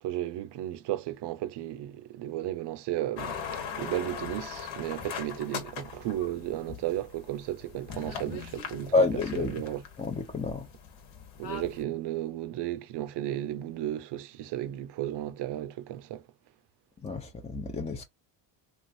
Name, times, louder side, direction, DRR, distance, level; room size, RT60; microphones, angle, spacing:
voice 1, 0.0-8.9 9.3-9.8 11.4-16.2, right 13 dB, 60° right, 0.6 m, -34 dB
sound 1, 3.2-11.8, left 7 dB, 75° left, 1.2 m, -40 dB
voice 2, 8.9-9.5 10.0-10.7 17.0-18.0, left 3 dB, 15° left, 0.5 m, -28 dB
3.2 x 2.4 x 2.6 m
supercardioid pair, 80°, 48 cm